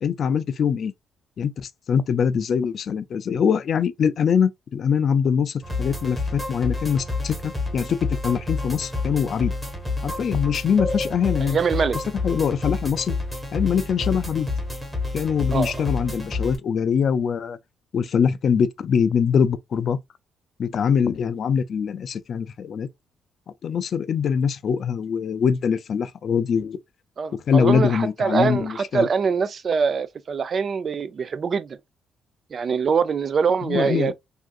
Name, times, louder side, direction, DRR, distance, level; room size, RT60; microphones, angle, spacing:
voice 1, 0.0-0.9 1.4-9.5 10.0-11.6 12.2-13.1 13.5-14.5 15.1-17.6 17.9-20.0 20.6-22.9 23.6-26.8 27.5-29.1 33.7-34.1, left 7 dB, 55° left, 0.3 m, -23 dB
sound 1, 5.6-16.6, left 2 dB, 5° right, 1.1 m, -29 dB
voice 2, 11.4-12.0 15.5-15.7 27.2-31.8 32.5-34.1, right 6 dB, 45° right, 0.3 m, -23 dB
3.6 x 2.5 x 2.3 m
cardioid pair, 90°, 0 cm